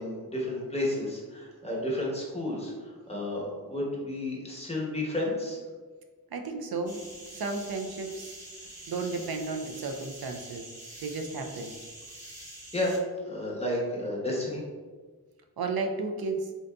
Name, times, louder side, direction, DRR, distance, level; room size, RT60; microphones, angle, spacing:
voice 1, 0.0-2.7 3.1-5.6 12.7-13.0 13.3-14.6, left 1 dB, 15° left, -3 dB, 0.9 m, -31 dB
voice 2, 6.3-7.0 7.3-8.3 8.9-10.6 11.0-11.7 15.6-16.5, right 3 dB, 75° right, 4 dB, 0.5 m, -33 dB
sound 1, 6.8-13.0, right 1 dB, 40° right, 1.3 m, -46 dB
3.8 x 2.6 x 2.2 m, 1.4 s
wide cardioid pair, 50°, 37 cm